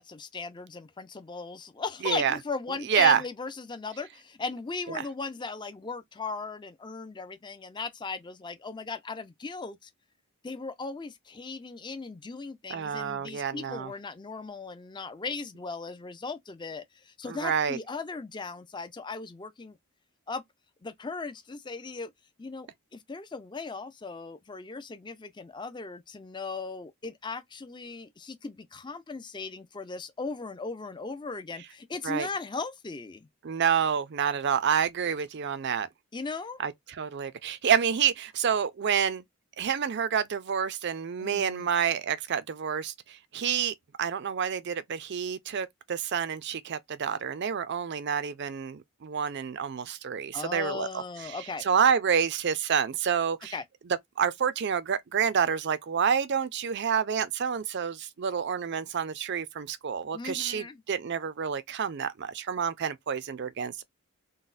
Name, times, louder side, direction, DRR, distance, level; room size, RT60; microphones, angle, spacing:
voice 1, 0.0-9.9 10.4-19.8 20.3-20.4 20.8-22.1 22.4-33.3 36.1-36.6 41.2-41.7 50.3-51.6 53.5-53.6 60.1-60.8, left 4 dB, 20° left, 0.4 m, -37 dB
voice 2, 2.0-2.4 2.9-3.2 4.9-5.0 12.7-13.9 17.3-17.8 32.0-32.3 33.4-35.9 36.6-36.7 37.0-39.2 39.6-53.5 54.2-63.8, right 7 dB, 50° right, 0.4 m, -28 dB
3.9 x 2.1 x 2.4 m
head